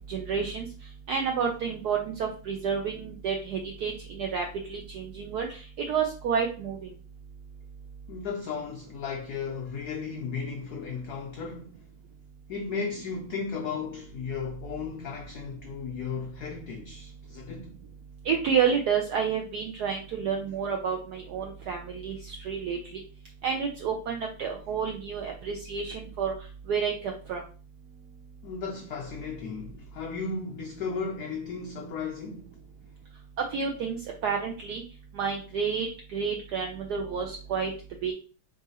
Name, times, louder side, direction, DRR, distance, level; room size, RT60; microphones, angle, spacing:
voice 1, 0.1-0.7 1.1-5.6 5.9-6.8 18.3-22.8 23.4-26.3 26.7-26.9 27.3-27.4 33.5-34.8 35.2-35.9 36.1-37.7 38.0-38.1, right 6 dB, 80° right, 0.9 m, -29 dB
voice 2, 8.1-11.8 12.5-17.8 28.4-32.5, left 5 dB, 85° left, 0.8 m, -35 dB
3.9 x 3.7 x 2.7 m
omnidirectional pair, 2.3 m